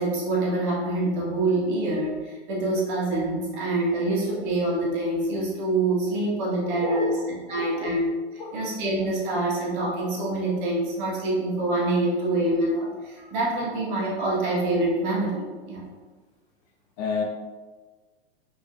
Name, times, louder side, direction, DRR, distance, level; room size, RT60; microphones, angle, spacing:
voice 1, 0.0-7.2 7.5-8.1 8.5-15.8, right 2 dB, 50° right, -5 dB, 1.4 m, -26 dB
voice 2, 6.7-7.1 7.5-7.9 8.4-8.6 17.0-17.2, left 4 dB, 40° left, 2 dB, 0.5 m, -31 dB
5.0 x 2.2 x 2.5 m, 1.3 s
hypercardioid pair, 110°, 32 cm